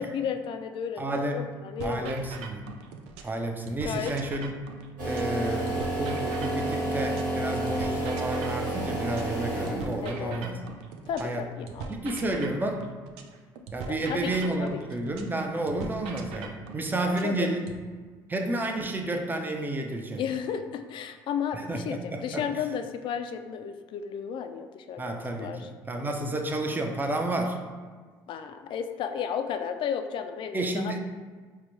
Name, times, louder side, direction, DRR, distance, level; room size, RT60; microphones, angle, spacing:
voice 1, 0.0-2.2 3.8-4.2 10.0-10.4 11.1-11.9 13.9-14.8 17.0-17.5 20.2-25.7 28.3-31.0, left 7 dB, 50° left, 7 dB, 0.4 m, -33 dB
voice 2, 1.0-1.5 1.8-2.7 3.2-4.5 5.0-10.6 11.2-11.5 11.9-12.9 13.7-17.6 18.3-20.2 21.5-22.5 25.0-27.6 30.5-31.0, right 2 dB, 20° right, 4 dB, 0.5 m, -31 dB
sound 1, 1.8-3.4 3.7-7.4 7.7-11.4 11.7-15.4 15.7-17.8, right 5 dB, 70° right, 0.4 m, -41 dB
sound 2, 5.0-10.1, right 1 dB, 90° right, 1.2 m, -30 dB
4.6 x 2.2 x 3.1 m, 1.5 s
hypercardioid pair, 65°, 11 cm